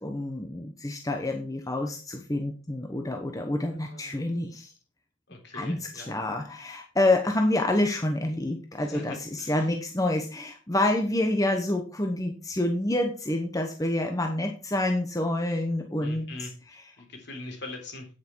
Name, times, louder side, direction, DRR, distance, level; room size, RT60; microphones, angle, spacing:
voice 1, 0.0-4.7 5.5-16.9, left 1 dB, 15° left, 4 dB, 1.0 m, -28 dB
voice 2, 3.8-4.2 5.3-6.2 8.8-9.6 16.0-16.5 17.0-18.1, left 2 dB, 55° left, 3 dB, 3.5 m, -42 dB
9.3 x 9.1 x 4.6 m, 0.36 s
head